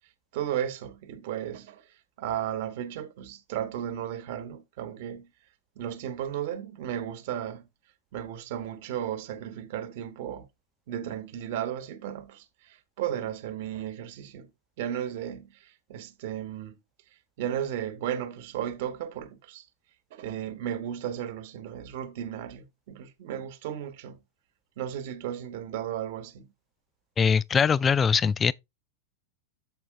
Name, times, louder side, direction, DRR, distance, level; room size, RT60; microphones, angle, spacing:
voice 1, 0.3-1.8 2.2-5.3 5.8-7.6 8.1-10.5 10.9-14.5 14.8-16.7 17.4-19.6 20.1-24.2 24.8-26.5, right 10 dB, 50° right, 1.2 m, -34 dB
voice 2, 27.2-28.5, left 6 dB, 20° left, 0.3 m, -22 dB
7.5 x 5.1 x 3.6 m
figure-of-eight pair, 90°, 0 cm